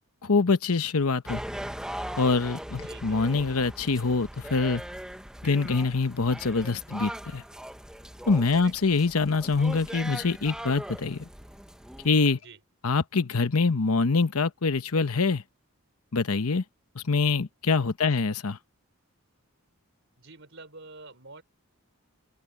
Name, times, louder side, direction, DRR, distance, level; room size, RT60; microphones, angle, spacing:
voice 1, 0.2-1.4 2.2-4.8 5.4-7.4 8.3-11.3 12.0-12.4 12.8-15.4 16.1-16.6 17.0-18.6, left 4 dB, 75° left, 1.0 m, -25 dB
sound 1, 1.3-12.1, right 1 dB, 5° right, 0.7 m, -40 dB
voice 2, 2.8-3.2 8.5-8.7 12.4-12.6 20.2-21.4, right 3 dB, 55° right, 5.4 m, -46 dB
open air
head